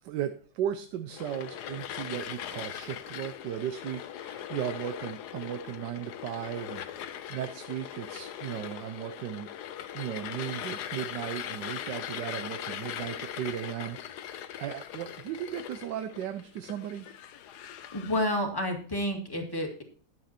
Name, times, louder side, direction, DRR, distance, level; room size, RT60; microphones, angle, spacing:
voice 1, 0.0-9.5 9.9-17.1, right 10 dB, 75° right, 9 dB, 1.3 m, -36 dB
sound 1, 1.1-18.4, left 10 dB, 70° left, 1.2 m, -40 dB
voice 2, 17.9-19.8, left 1 dB, 15° left, 1 dB, 1.9 m, -30 dB
11.0 x 7.5 x 4.2 m, 0.43 s
omnidirectional pair, 2.0 m